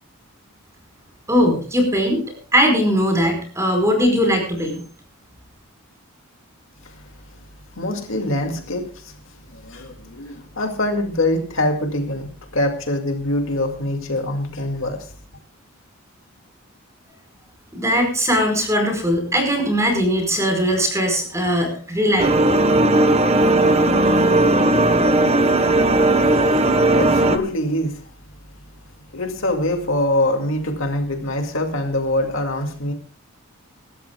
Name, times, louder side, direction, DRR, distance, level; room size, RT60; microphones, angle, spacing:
voice 1, 1.3-2.2 2.5-4.8 17.7-22.3, equal, 15° right, 4 dB, 4.7 m, -19 dB
voice 2, 7.8-9.1 9.5-12.3 12.5-15.1 26.3-28.0 29.1-32.9, left 1 dB, 65° left, 4 dB, 2.3 m, -24 dB
sound 1, 22.2-27.4, right 2 dB, 30° right, 1.3 m, -16 dB
25.5 x 13.0 x 2.3 m, 0.39 s
head